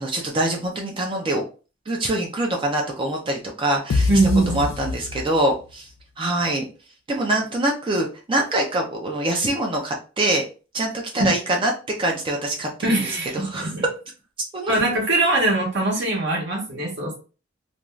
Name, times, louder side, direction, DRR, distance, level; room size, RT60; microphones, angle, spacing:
voice 1, 0.0-1.4 1.9-4.1 4.5-5.9 6.2-6.7 7.1-10.4 10.7-11.7 12.0-13.7 14.5-14.8, right 1 dB, 25° right, 1 dB, 0.4 m, -24 dB
sound 1, 3.9-5.7, left 3 dB, 85° left, 0.4 m, -25 dB
voice 2, 4.1-4.7 11.2-11.3 12.8-13.8 14.7-17.2, right 2 dB, 60° right, -1 dB, 0.8 m, -22 dB
2.5 x 2.2 x 3.1 m, 0.35 s
head